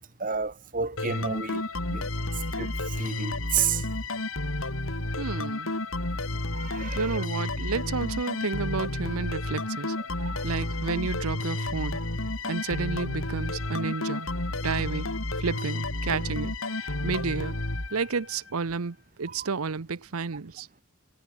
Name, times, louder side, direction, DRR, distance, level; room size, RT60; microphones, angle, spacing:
voice 1, 0.0-1.6 1.9-2.1 2.5-3.8 6.5-7.2 10.2-10.5 19.4-19.5, right 7 dB, 40° right, 3.1 m, -31 dB
sound 1, 1.0-18.5, left 2 dB, 70° left, 3.7 m, -31 dB
voice 2, 5.2-5.7 6.9-10.0 10.4-12.0 12.4-15.1 15.4-17.6 17.9-20.7, right 4 dB, 85° right, 0.8 m, -31 dB
head